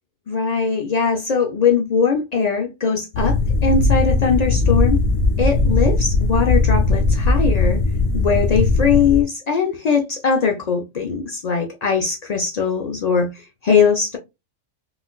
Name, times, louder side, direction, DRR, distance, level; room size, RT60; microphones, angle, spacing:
voice 1, 0.3-3.4 3.6-5.0 5.4-7.8 8.1-13.3 13.6-14.2, left 5 dB, 70° left, 0.3 m, -20 dB
sound 1, 3.1-9.2, left 3 dB, 90° left, 1.0 m, -18 dB
3.9 x 2.4 x 2.2 m
omnidirectional pair, 1.3 m